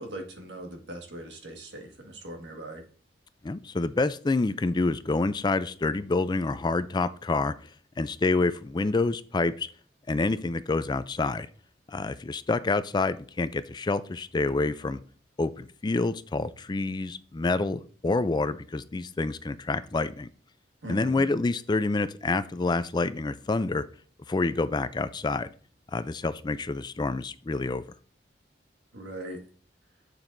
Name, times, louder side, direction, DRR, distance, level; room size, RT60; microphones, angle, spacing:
voice 1, 0.0-2.8 20.8-21.3 28.9-29.4, right 1 dB, 80° right, 3 dB, 1.7 m, -40 dB
voice 2, 3.4-7.5 8.0-9.7 10.1-11.5 11.9-15.0 15.4-20.3 20.9-23.8 24.3-25.5 25.9-27.8, left 3 dB, 25° left, 13 dB, 0.4 m, -27 dB
8.1 x 7.2 x 2.6 m, 0.42 s
head